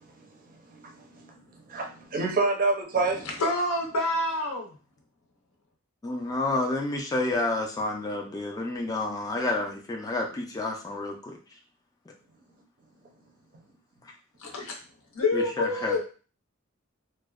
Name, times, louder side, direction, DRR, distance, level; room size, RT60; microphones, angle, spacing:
voice 1, 0.7-1.3 1.7-3.2, right 3 dB, 40° right, 2 dB, 0.5 m, -27 dB
voice 2, 3.4-4.7 14.4-14.7 15.1-16.0, left 2 dB, 70° left, 1 dB, 0.6 m, -27 dB
voice 3, 6.0-11.4 15.3-16.0, left 2 dB, 15° left, 1 dB, 0.3 m, -29 dB
2.6 x 2.0 x 2.3 m, 0.37 s
head